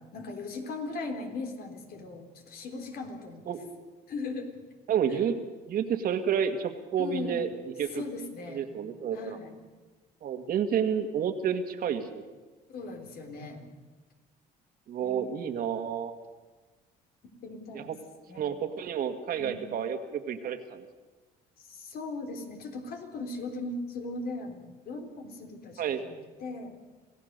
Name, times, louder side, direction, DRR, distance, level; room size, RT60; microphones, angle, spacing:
voice 1, 0.0-3.4 4.1-4.6 5.1-5.2 7.0-7.5 7.9-8.8 9.1-9.5 12.7-13.7 15.0-15.3 17.4-17.9 18.3-18.5 19.4-19.6 21.6-26.8, left 3 dB, 65° left, 4 dB, 3.5 m, -38 dB
voice 2, 4.9-7.5 7.8-8.0 8.5-9.4 10.2-12.2 14.9-16.1 17.7-18.0 18.3-20.8 25.8-26.0, right 8 dB, 60° right, 7 dB, 1.9 m, -30 dB
26.5 x 16.0 x 6.7 m, 1.3 s
cardioid pair, 110°, 17 cm